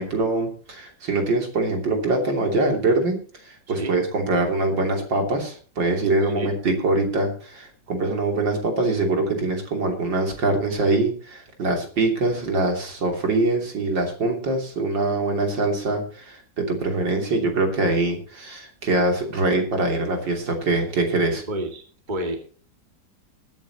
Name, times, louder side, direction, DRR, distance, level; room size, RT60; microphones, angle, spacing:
voice 1, 0.0-3.2 3.4-21.4, right 2 dB, 75° right, 3 dB, 3.7 m, -23 dB
voice 2, 21.5-22.4, right 1 dB, 25° right, 4 dB, 2.3 m, -29 dB
20.5 x 10.5 x 3.0 m, 0.40 s
omnidirectional pair, 2.0 m